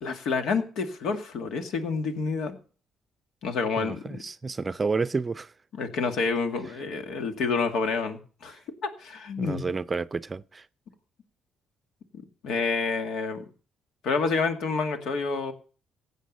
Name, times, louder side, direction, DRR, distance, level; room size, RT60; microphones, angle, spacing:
voice 1, 0.0-2.6 3.4-4.2 5.7-9.7 12.4-13.4 14.0-15.5, left 4 dB, 80° left, 2.0 m, -28 dB
voice 2, 3.8-5.5 9.4-10.7, right 4 dB, 30° right, 0.5 m, -30 dB
16.0 x 8.3 x 5.3 m
cardioid pair, 90°, 0 cm